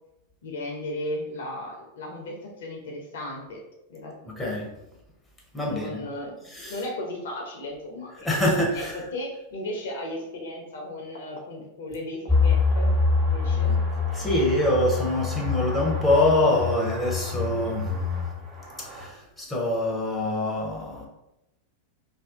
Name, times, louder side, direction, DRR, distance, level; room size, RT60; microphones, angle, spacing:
voice 1, 0.4-3.6 3.9-4.2 5.6-6.3 6.7-8.3 8.7-8.8 9.1-13.8, left 1 dB, 60° left, 1 dB, 0.6 m, -35 dB
voice 2, 4.3-4.7 5.5-6.1 6.5-6.8 8.2-9.0 14.1-17.9 18.8-21.1, left 1 dB, 10° left, -2 dB, 0.8 m, -25 dB
sound 1, 12.3-19.1, left 4 dB, 20° right, 1.1 m, -26 dB
2.6 x 2.3 x 3.5 m, 0.88 s
figure-of-eight pair, 90°, 0 cm